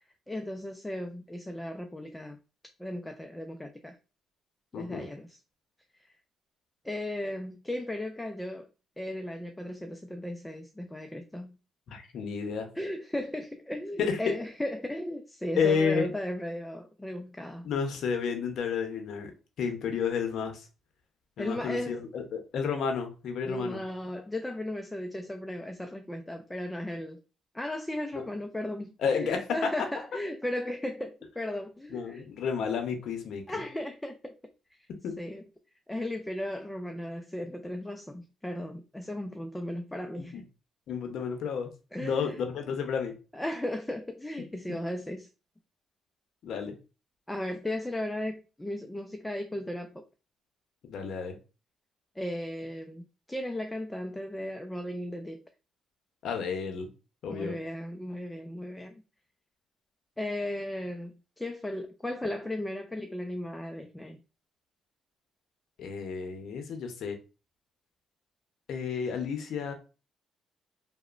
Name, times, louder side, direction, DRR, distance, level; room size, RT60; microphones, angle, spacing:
voice 1, 0.3-2.4 2.8-4.0 4.7-5.4 6.8-8.7 9.0-11.6 12.8-17.7 21.4-22.0 23.5-27.2 27.5-32.3 33.5-34.3 35.2-35.4 35.9-40.5 41.9-42.4 43.3-45.3 47.3-50.0 52.2-55.4 57.3-58.9 60.2-64.2, left 1 dB, 10° left, 0.3 m, -36 dB
voice 2, 4.7-5.1 11.9-12.7 14.0-14.2 15.6-16.1 17.6-19.3 19.6-20.7 21.4-23.8 29.0-29.4 31.9-33.6 35.0-35.1 40.2-40.4 40.9-41.7 42.0-43.1 46.4-46.7 50.8-51.4 56.2-56.9 57.2-57.6 65.8-67.2 68.7-69.7, left 6 dB, 70° left, 0.6 m, -31 dB
2.9 x 2.1 x 2.4 m
cardioid pair, 80°, 0 cm